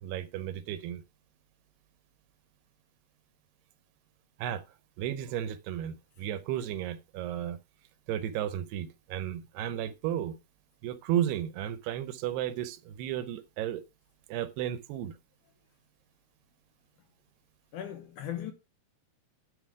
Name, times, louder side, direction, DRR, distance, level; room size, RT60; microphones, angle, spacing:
voice 1, 0.0-1.0 4.4-4.6 5.0-7.6 8.1-10.4 10.8-13.8 14.3-15.2, right 11 dB, 80° right, 2.8 m, -33 dB
voice 2, 17.7-18.5, left 11 dB, 75° left, 1.8 m, -37 dB
11.5 x 6.3 x 4.8 m
omnidirectional pair, 4.7 m